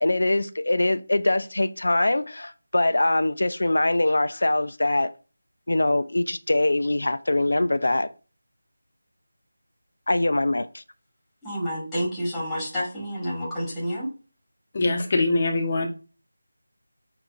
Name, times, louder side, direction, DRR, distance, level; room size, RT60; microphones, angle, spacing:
voice 1, 0.0-5.1 5.7-8.1 10.1-10.8, left 2 dB, 75° left, 0.4 m, -23 dB
voice 2, 11.4-14.1, equal, 5° left, 1.4 m, -29 dB
voice 3, 14.7-15.9, left 2 dB, 35° left, 0.7 m, -23 dB
6.4 x 2.9 x 2.4 m
figure-of-eight pair, 170°, 0 cm